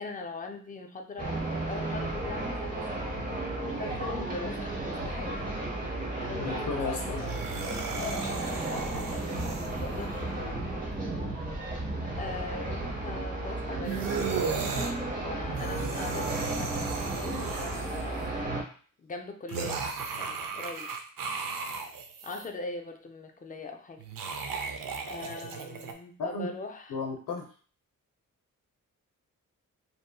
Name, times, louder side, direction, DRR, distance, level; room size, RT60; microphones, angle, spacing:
voice 1, 0.0-3.0 3.8-5.6 6.2-7.4 7.9-11.0 12.2-17.5 17.8-18.7 19.0-20.9 22.2-24.0 25.1-27.0, left 3 dB, 25° left, 5 dB, 0.3 m, -41 dB
sound 1, 1.2-18.6, right 2 dB, 25° right, 0.8 m, -34 dB
voice 2, 6.3-7.2 8.9-9.2 26.2-26.5 26.9-27.5, left 4 dB, 80° left, -1 dB, 0.6 m, -34 dB
sound 2, 7.1-10.1 13.8-14.9 15.4-18.2 19.5-22.5 24.0-25.9, right 6 dB, 80° right, 0.5 m, -36 dB
2.7 x 2.5 x 2.2 m, 0.41 s
wide cardioid pair, 105°, 33 cm